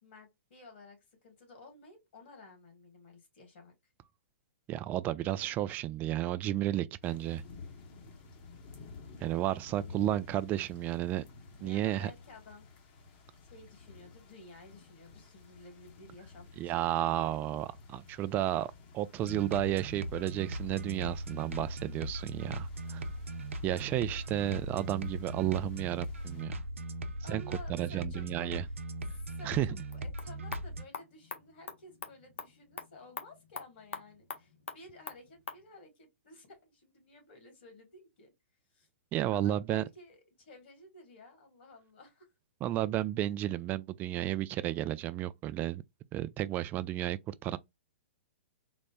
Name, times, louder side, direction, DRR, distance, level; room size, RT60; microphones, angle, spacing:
voice 1, 0.0-3.7 7.1-7.2 9.7-10.3 11.6-12.7 13.5-16.9 27.2-28.8 29.1-38.3 38.7-38.9 39.3-42.3, left 2 dB, 60° left, 2.0 m, -54 dB
voice 2, 4.7-7.4 9.2-11.2 11.6-12.1 16.6-23.0 23.6-26.6 27.3-27.4 27.7-28.6 29.4-29.7 39.1-39.8 42.6-45.8 46.1-47.6, right 13 dB, 25° right, 0.4 m, -32 dB
sound 1, 7.0-26.4, left 4 dB, 45° left, 1.1 m, -53 dB
sound 2, 19.2-30.8, right 1 dB, 80° right, 0.6 m, -39 dB
sound 3, 29.8-35.6, left 5 dB, 75° left, 0.9 m, -46 dB
4.0 x 2.1 x 3.4 m
hypercardioid pair, 125°, 7 cm